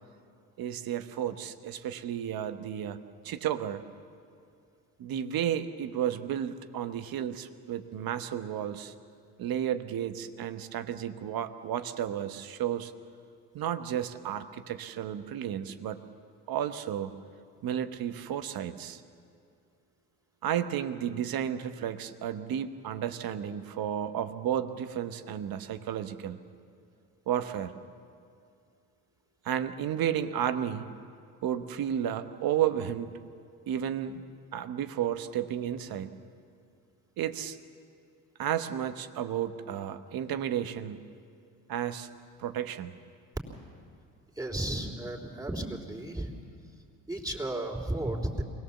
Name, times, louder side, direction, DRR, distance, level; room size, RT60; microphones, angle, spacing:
voice 1, 0.6-3.0 3.2-3.8 5.0-8.9 9.4-12.9 13.5-16.0 16.5-17.1 17.6-19.0 20.4-26.4 27.3-27.7 29.4-30.9 31.4-33.1 33.7-34.2 34.5-36.1 37.2-37.6 38.4-41.1 41.7-42.1 42.4-42.9, right 10 dB, 60° right, 9 dB, 1.2 m, -32 dB
voice 2, 44.4-46.3 47.1-48.4, right 1 dB, 10° right, -1 dB, 3.4 m, -33 dB
24.0 x 17.5 x 7.2 m, 2.4 s
supercardioid pair, 75°, 39 cm